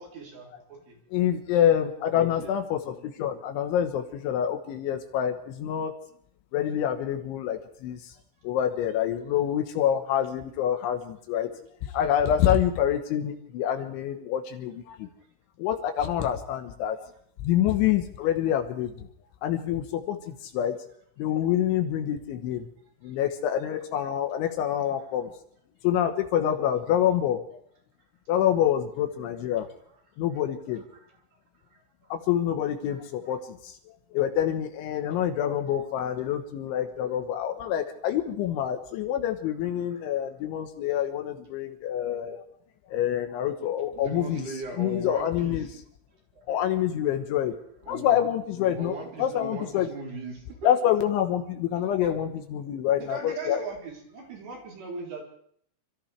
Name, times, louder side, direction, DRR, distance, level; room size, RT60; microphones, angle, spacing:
voice 1, 0.0-1.0 53.0-55.2, right 3 dB, 60° right, -2 dB, 5.4 m, -39 dB
voice 2, 1.1-5.9 6.5-8.0 8.4-11.5 11.8-15.1 15.6-17.0 17.4-19.1 19.4-20.8 21.2-22.7 23.0-25.4 25.8-27.4 28.3-29.7 30.2-30.8 32.1-33.8 34.1-42.4 42.9-44.5 44.8-45.7 46.5-47.5 47.9-49.9 50.6-53.6, left 10 dB, 75° left, 5 dB, 3.4 m, -26 dB
voice 3, 2.1-2.6 23.0-23.1 31.7-32.1 32.9-33.0 43.9-45.8 46.4-46.5 47.9-48.2 48.8-50.7 52.0-52.1, right 2 dB, 45° right, -1 dB, 4.2 m, -39 dB
28.0 x 14.0 x 3.4 m, 0.63 s
omnidirectional pair, 5.6 m